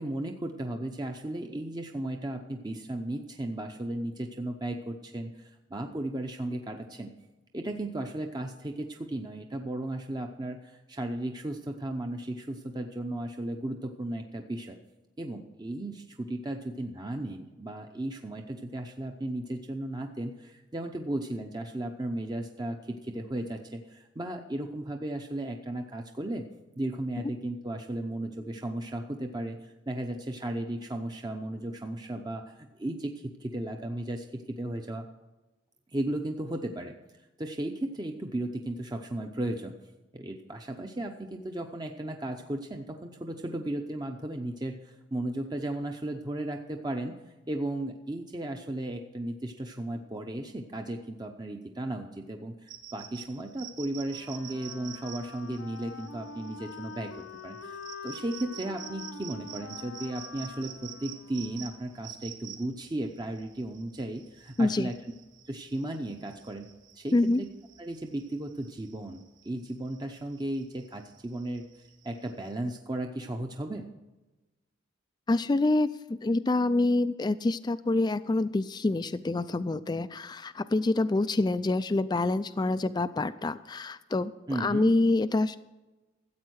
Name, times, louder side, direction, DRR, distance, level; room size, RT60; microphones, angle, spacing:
voice 1, 0.0-7.1 7.5-14.8 15.2-26.4 26.8-35.1 35.9-37.0 37.4-39.8 40.1-47.2 47.5-65.0 65.5-66.7 66.9-67.5 67.8-71.7 72.0-73.9 84.5-84.9, right 1 dB, 20° right, 4 dB, 0.7 m, -35 dB
sound 1, 52.7-72.6, right 10 dB, 80° right, 2.2 m, -48 dB
Wind instrument woodwind instrument, 54.0-62.3, left 4 dB, 90° left, 1.1 m, -45 dB
voice 2, 64.6-64.9 67.1-67.4 75.3-84.3 84.6-85.6, left 2 dB, 20° left, 12 dB, 0.3 m, -26 dB
13.5 x 8.4 x 6.3 m, 1.1 s
head